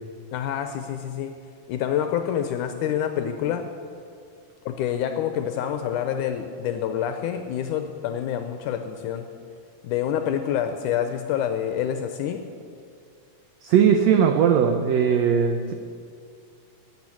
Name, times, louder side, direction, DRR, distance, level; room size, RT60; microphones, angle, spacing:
voice 1, 0.3-1.3 1.7-3.7 4.7-9.3 9.8-12.5, left 9 dB, 80° left, 7 dB, 1.9 m, -27 dB
voice 2, 13.6-15.7, right 7 dB, 90° right, 5 dB, 1.5 m, -19 dB
10.5 x 8.3 x 10.0 m, 2.3 s
omnidirectional pair, 4.0 m